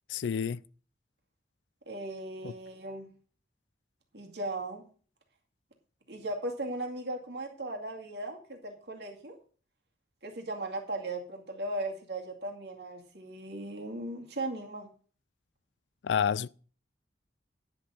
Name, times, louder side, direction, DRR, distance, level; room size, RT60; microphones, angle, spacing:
voice 1, 0.1-0.6 2.4-2.5 16.0-16.5, left 7 dB, 85° left, 0.4 m, -29 dB
voice 2, 1.9-3.1 4.1-4.8 6.1-9.4 10.2-14.9, right 2 dB, 70° right, 2.2 m, -37 dB
10.0 x 6.6 x 5.5 m
head